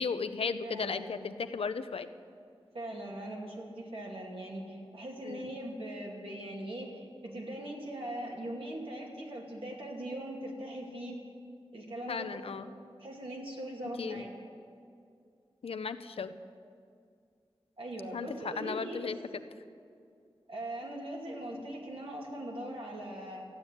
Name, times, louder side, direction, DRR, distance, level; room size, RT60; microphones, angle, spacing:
voice 1, 0.0-2.1 5.2-5.5 12.1-12.7 14.0-14.2 15.6-16.3 18.1-19.2, left 5 dB, 85° left, 11 dB, 0.6 m, -35 dB
voice 2, 0.6-1.1 2.7-11.2 11.7-12.6 13.0-14.3 17.8-19.2 20.5-23.5, right 1 dB, 70° right, -2 dB, 2.5 m, -40 dB
14.0 x 8.1 x 9.9 m, 2.4 s
wide cardioid pair, 80°, 10 cm